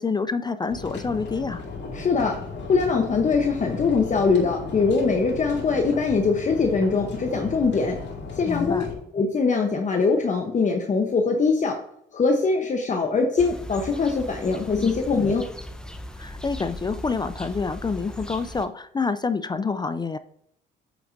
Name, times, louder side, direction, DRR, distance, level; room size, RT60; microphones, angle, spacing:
voice 1, 0.0-1.6 8.5-8.9 14.7-15.0 16.2-20.2, left 4 dB, 20° left, 12 dB, 0.4 m, -27 dB
sound 1, 0.7-8.9, left 4 dB, 60° left, 2.3 m, -35 dB
voice 2, 1.9-2.4 2.7-8.0 8.3-8.8 9.1-11.8 12.1-15.4, left 4 dB, 40° left, 3 dB, 0.9 m, -22 dB
sound 2, 13.4-18.7, left 1 dB, 5° left, 0.8 m, -38 dB
8.4 x 5.9 x 2.6 m, 0.73 s
cardioid pair, 90°, 20 cm